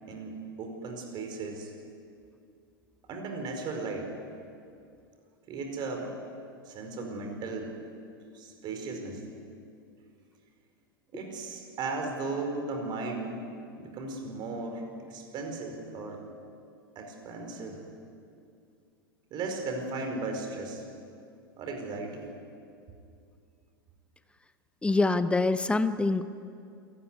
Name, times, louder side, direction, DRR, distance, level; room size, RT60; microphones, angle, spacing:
voice 1, 0.0-1.7 3.1-4.1 5.5-6.1 6.7-7.8 8.3-9.2 11.1-13.4 13.8-16.3 16.9-17.9 19.3-20.8 21.6-22.3, right 3 dB, 35° right, 3 dB, 4.8 m, -36 dB
voice 2, 24.8-26.3, left 3 dB, 10° left, 12 dB, 0.8 m, -25 dB
27.5 x 15.5 x 9.7 m, 2.5 s
figure-of-eight pair, 90°, 12 cm